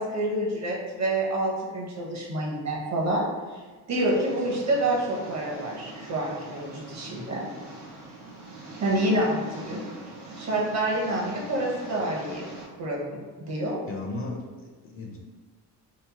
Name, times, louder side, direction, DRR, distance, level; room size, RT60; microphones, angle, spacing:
voice 1, 0.0-3.2 3.5-3.6 3.9-7.5 8.8-9.8 10.4-12.4 12.8-13.8, right 1 dB, 40° right, -2 dB, 0.7 m, -28 dB
Engine, 4.0-12.6, right 2 dB, 90° right, 0.9 m, -43 dB
voice 2, 13.9-15.2, left 2 dB, 35° left, -1 dB, 0.4 m, -36 dB
2.9 x 2.0 x 2.8 m, 1.4 s
cardioid pair, 100°, 39 cm